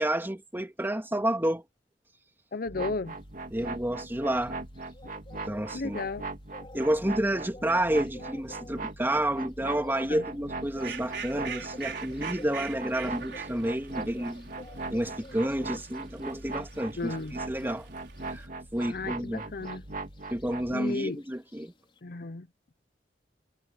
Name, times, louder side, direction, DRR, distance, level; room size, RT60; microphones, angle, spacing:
voice 1, 0.0-1.6 3.5-4.6 5.5-6.0 6.7-14.5 14.9-17.2 17.5-17.9 18.3-18.5 18.7-19.5 20.3-21.7, right 1 dB, 15° right, 2.8 m, -30 dB
voice 2, 2.5-3.2 5.7-6.3 10.1-10.2 17.0-17.3 18.9-19.8 20.7-21.2 22.0-22.5, left 3 dB, 55° left, 0.7 m, -34 dB
sound 1, 2.7-20.7, right 3 dB, 50° right, 2.1 m, -40 dB
sound 2, 3.2-22.0, left 2 dB, 30° left, 4.9 m, -52 dB
Fowl, 10.7-18.5, right 6 dB, 75° right, 4.8 m, -43 dB
head